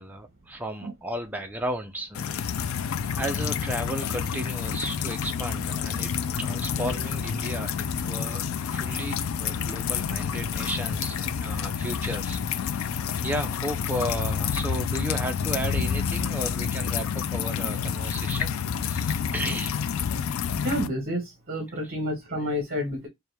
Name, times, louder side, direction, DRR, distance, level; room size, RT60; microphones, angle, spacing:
voice 1, 0.0-2.7 3.1-8.4 8.7-12.9 13.2-18.5 18.8-19.8 21.8-21.9, right 1 dB, 10° right, 0.5 m, -34 dB
sound 1, 2.1-20.9, left 7 dB, 70° left, 0.4 m, -29 dB
voice 2, 20.6-23.1, equal, 45° right, 1.1 m, -29 dB
4.5 x 2.3 x 3.3 m
head